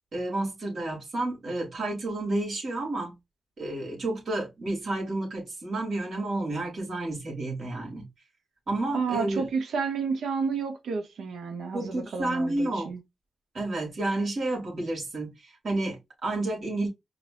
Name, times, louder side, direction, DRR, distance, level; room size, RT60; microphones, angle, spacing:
voice 1, 0.1-3.2 3.6-8.1 8.7-9.5 11.7-12.9 13.5-16.9, right 2 dB, 65° right, 3.1 m, -30 dB
voice 2, 8.9-13.0, right 5 dB, 85° right, 0.9 m, -30 dB
4.8 x 2.6 x 3.7 m
cardioid pair, 60°, 0 cm